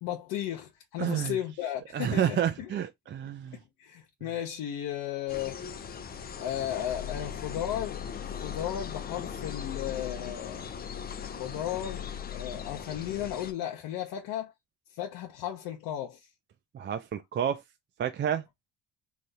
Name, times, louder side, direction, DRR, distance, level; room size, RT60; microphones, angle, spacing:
voice 1, 0.0-2.7 3.3-5.6 6.4-10.8 11.3-14.5 14.9-16.3, left 11 dB, 80° left, 0.8 m, -35 dB
voice 2, 1.0-1.4 1.9-3.6 16.7-17.6 18.0-18.4, right 9 dB, 30° right, 0.4 m, -29 dB
sound 1, 5.3-13.5, left 7 dB, 25° left, 0.5 m, -39 dB
3.3 x 2.3 x 2.6 m
cardioid pair, 105°, 36 cm